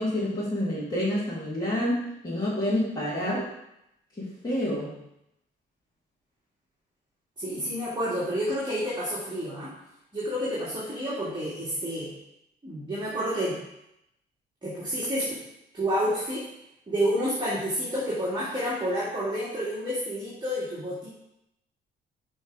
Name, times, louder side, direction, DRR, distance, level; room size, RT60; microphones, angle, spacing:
voice 1, 0.0-3.5 4.2-4.9, left 1 dB, 20° left, -9 dB, 2.4 m, -28 dB
voice 2, 7.4-9.7 10.1-12.1 12.6-13.6 14.6-15.4 15.7-16.4 16.9-21.1, equal, 25° right, -8 dB, 2.0 m, -29 dB
6.4 x 3.6 x 4.6 m, 0.83 s
cardioid pair, 90°, 20 cm